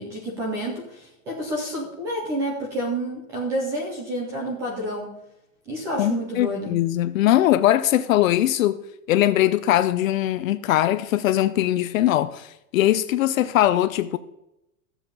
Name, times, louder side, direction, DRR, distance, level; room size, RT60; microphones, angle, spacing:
voice 1, 0.0-5.2 5.7-6.7, right 1 dB, 5° right, 0.4 m, -29 dB
voice 2, 6.0-8.8 9.1-14.2, left 13 dB, 65° left, 0.7 m, -21 dB
13.0 x 7.2 x 5.4 m
supercardioid pair, 175°, 43 cm